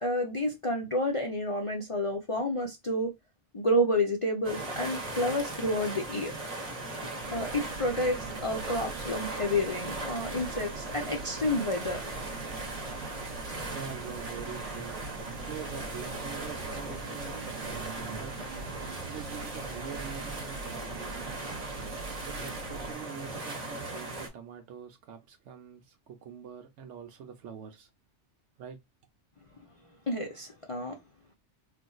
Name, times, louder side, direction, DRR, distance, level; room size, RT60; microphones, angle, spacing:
voice 1, 0.0-3.1 3.5-6.3 7.3-12.0 30.1-31.0, left 1 dB, 40° left, 0.5 m, -30 dB
sound 1, 4.4-24.3, right 2 dB, 35° right, 0.9 m, -38 dB
sound 2, 7.2-22.9, right 4 dB, 60° right, 0.7 m, -43 dB
voice 2, 13.7-18.4 19.1-21.5 22.2-27.9 28.6-28.8, right 7 dB, 85° right, 1.0 m, -44 dB
4.0 x 2.5 x 2.3 m
omnidirectional pair, 1.2 m